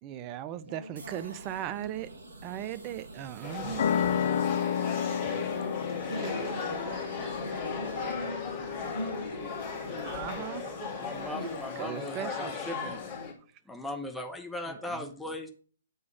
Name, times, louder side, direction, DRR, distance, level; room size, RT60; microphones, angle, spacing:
voice 1, 0.0-2.1 2.4-4.2 5.0-5.4 6.1-6.7 10.0-12.5 14.7-15.1, right 11 dB, 25° right, 0.5 m, -39 dB
voice 2, 0.7-1.9 4.3-10.4 11.3-11.9, equal, 80° right, 3.0 m, -42 dB
sound 1, 1.0-12.7, right 2 dB, 60° right, 1.6 m, -49 dB
sound 2, 3.4-13.3, left 5 dB, 30° left, 2.1 m, -37 dB
sound 3, 3.8-11.0, left 8 dB, 50° left, 0.3 m, -33 dB
voice 3, 11.0-13.0 13.7-15.5, left 1 dB, 5° left, 0.8 m, -38 dB
7.9 x 3.6 x 6.1 m
figure-of-eight pair, 130°, 0 cm